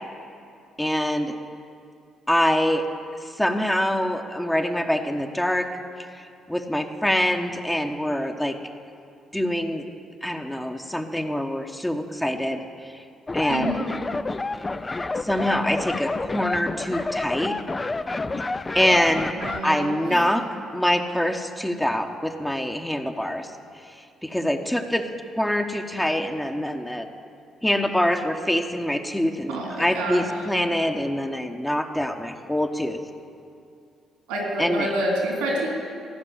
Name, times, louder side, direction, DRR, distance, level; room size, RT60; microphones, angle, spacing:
voice 1, 0.8-1.3 2.3-2.8 3.4-5.7 6.2-8.6 9.3-9.8 10.2-12.6 12.9-13.0 13.3-13.7 15.2-17.6 18.7-19.3 19.6-20.4 20.7-23.5 24.2-25.0 25.4-27.1 27.6-33.0 34.6-34.9, left 1 dB, 10° left, 4 dB, 1.1 m, -24 dB
sound 1, 13.3-19.6, left 3 dB, 30° left, 0.5 m, -29 dB
voice 2, 13.5-13.9 19.4-20.2 29.5-30.3 34.3-35.7, right 1 dB, 80° right, -1 dB, 3.2 m, -28 dB
15.0 x 5.9 x 9.3 m, 2.5 s
hypercardioid pair, 45°, 0 cm